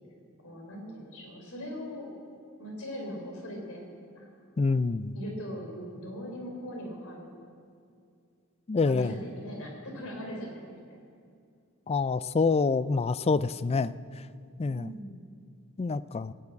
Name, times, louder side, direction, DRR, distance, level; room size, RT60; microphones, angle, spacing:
voice 1, 0.4-2.1 2.6-3.9 4.1-4.3 5.1-7.3 8.8-11.0 14.6-15.2, equal, 90° left, 1 dB, 3.9 m, -40 dB
voice 2, 4.6-5.1 8.7-9.1 11.9-14.0 14.6-14.9 15.8-16.3, left 4 dB, 30° left, 16 dB, 0.4 m, -26 dB
16.5 x 9.5 x 8.5 m, 2.3 s
head